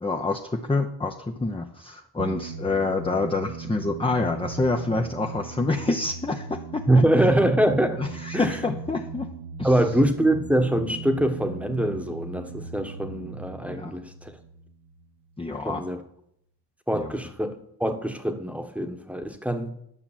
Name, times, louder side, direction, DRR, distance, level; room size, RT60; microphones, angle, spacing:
voice 1, 0.0-6.8 8.0-9.3 9.6-9.7 13.7-13.9 15.4-15.8 16.9-17.1, left 3 dB, 15° left, 3 dB, 0.7 m, -27 dB
sound 1, 2.2-15.4, right 4 dB, 70° right, 1.0 m, -38 dB
voice 2, 6.9-8.0 8.3-8.6 9.6-14.3 15.6-16.0 16.9-19.7, right 1 dB, 5° right, 6 dB, 1.2 m, -24 dB
10.0 x 5.9 x 7.3 m, 0.74 s
cardioid pair, 80°, 41 cm